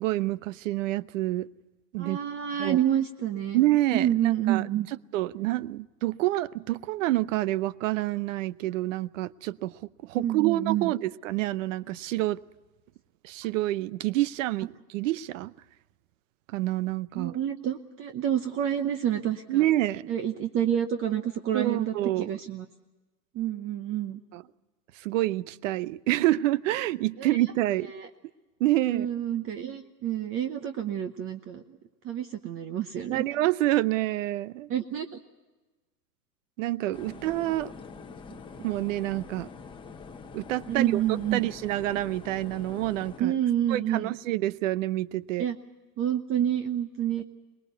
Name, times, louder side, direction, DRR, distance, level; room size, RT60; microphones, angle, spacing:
voice 1, 0.0-1.5 1.9-2.2 2.6-2.8 3.5-4.6 5.1-9.7 10.0-12.4 13.2-15.5 16.5-17.4 19.5-20.1 21.5-22.3 24.3-24.4 25.0-27.9 28.6-29.1 33.1-34.7 36.6-37.7 38.6-39.5 40.3-41.0 41.3-43.4 43.7-45.4, right 16 dB, 50° right, 19 dB, 0.8 m, -27 dB
voice 2, 2.0-3.6 3.9-4.9 10.2-10.9 17.1-19.6 20.1-22.7 23.3-24.2 27.2-27.4 27.9-28.1 28.9-31.8 32.0-33.2 34.7-35.2 40.7-41.4 43.2-44.1 45.4-45.6 46.0-47.2, right 10 dB, 25° right, 8 dB, 0.9 m, -28 dB
sound 1, 36.9-43.2, left 4 dB, 10° left, 1.1 m, -45 dB
23.5 x 20.5 x 8.2 m, 1.2 s
hypercardioid pair, 130°, 50 cm